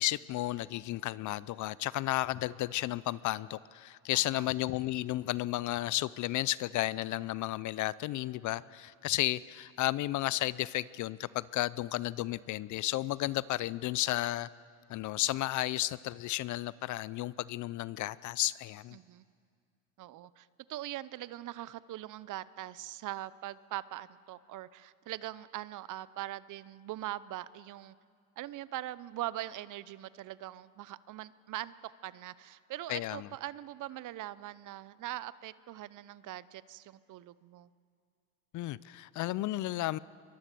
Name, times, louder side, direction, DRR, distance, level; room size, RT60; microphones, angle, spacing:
voice 1, 0.0-14.5 14.9-19.0 32.9-33.3 38.5-40.0, left 16 dB, 45° left, 20 dB, 0.5 m, -33 dB
voice 2, 4.1-4.5 18.9-19.2 20.0-27.9 28.4-37.7, right 14 dB, 45° right, 18 dB, 0.8 m, -42 dB
23.0 x 21.5 x 6.9 m, 2.2 s
hypercardioid pair, 90°, 44 cm